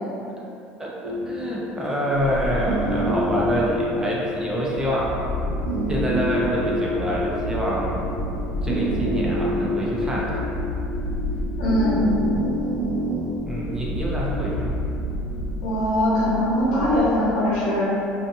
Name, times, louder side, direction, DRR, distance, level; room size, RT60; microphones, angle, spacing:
voice 1, 0.8-5.1 5.9-8.0 8.6-10.4 13.5-14.8, equal, 15° right, -5 dB, 0.5 m, -26 dB
sound 1, 1.0-13.4, equal, 80° right, 0.4 m, -28 dB
sound 2, 2.1-3.8 4.4-17.0, left 1 dB, 50° left, 0.7 m, -30 dB
voice 2, 11.6-12.0 15.6-17.8, left 1 dB, 80° left, -8 dB, 1.0 m, -21 dB
2.6 x 2.4 x 2.6 m, 2.7 s
supercardioid pair, 120°, 4 cm